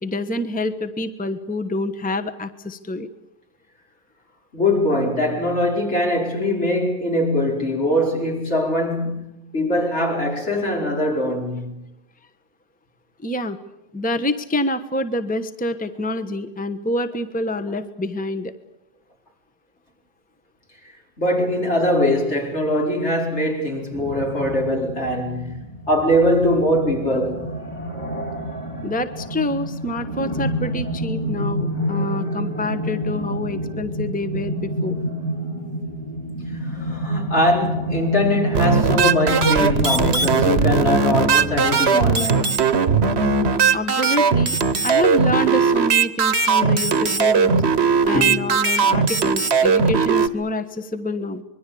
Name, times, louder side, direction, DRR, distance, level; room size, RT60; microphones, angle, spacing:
voice 1, 0.0-3.1 13.2-13.6 13.9-18.5 28.8-35.0 43.7-44.6 44.8-47.6 48.1-51.4, left 1 dB, 5° left, 1.1 m, -27 dB
voice 2, 4.5-9.3 9.5-11.8 21.2-25.6 25.9-27.5 36.6-42.5 48.1-48.5, left 1 dB, 70° left, 5.2 m, -22 dB
sound 1, 23.9-41.8, equal, 25° left, 3.9 m, -28 dB
sound 2, 38.5-50.3, right 5 dB, 60° right, 1.4 m, -18 dB
25.5 x 22.0 x 8.5 m
omnidirectional pair, 1.2 m